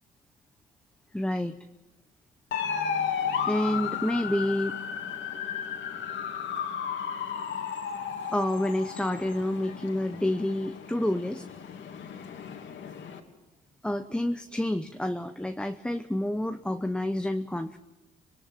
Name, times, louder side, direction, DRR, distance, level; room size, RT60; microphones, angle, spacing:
voice 1, 1.1-1.6 3.5-4.8 8.3-11.5 13.8-17.8, left 1 dB, 5° left, 8 dB, 0.8 m, -29 dB
sound 1, 2.5-13.2, left 7 dB, 70° left, 2.7 m, -34 dB
26.0 x 21.0 x 5.8 m, 1.1 s
cardioid pair, 90°, 20 cm